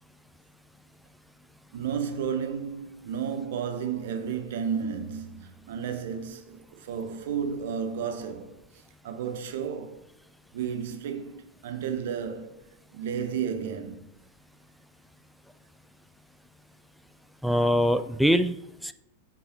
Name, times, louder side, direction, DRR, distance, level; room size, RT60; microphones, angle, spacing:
voice 1, 1.7-8.6 9.0-10.0 10.5-12.6 12.9-14.0, right 7 dB, 55° right, 0.8 m, -32 dB
voice 2, 17.4-18.9, equal, ahead, 0.3 m, -23 dB
8.5 x 4.7 x 2.9 m
figure-of-eight pair, 90°, 0 cm